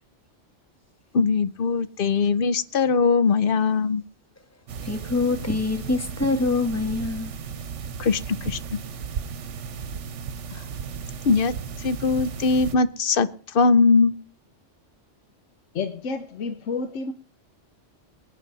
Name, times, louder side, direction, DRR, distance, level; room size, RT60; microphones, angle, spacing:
voice 1, 1.1-4.0 8.0-8.6 11.2-11.5 11.8-13.3 13.5-14.1, left 4 dB, 55° left, 0.8 m, -21 dB
sound 1, 4.7-12.8, right 6 dB, 75° right, 1.2 m, -35 dB
voice 2, 4.8-7.3, left 3 dB, 15° left, 1.5 m, -25 dB
voice 3, 15.7-17.1, left 4 dB, 80° left, 1.2 m, -30 dB
21.0 x 9.5 x 4.0 m
omnidirectional pair, 1.2 m